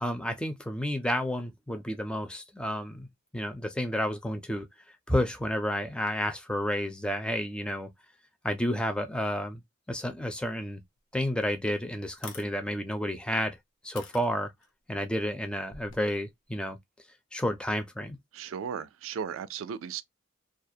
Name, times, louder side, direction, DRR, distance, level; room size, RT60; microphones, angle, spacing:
voice 1, 0.0-3.1 3.3-4.7 5.1-7.9 8.4-9.6 9.9-10.8 11.1-13.6 13.8-14.5 14.9-16.8 17.3-18.2, equal, 5° left, 0.4 m, -31 dB
sound 1, 11.0-11.1 11.5-11.6 12.1-12.5 13.2-13.3 14.0-14.7 15.6-16.0, left 5 dB, 80° left, 0.6 m, -45 dB
voice 2, 18.3-20.0, right 7 dB, 90° right, 0.3 m, -36 dB
2.3 x 2.0 x 2.6 m
head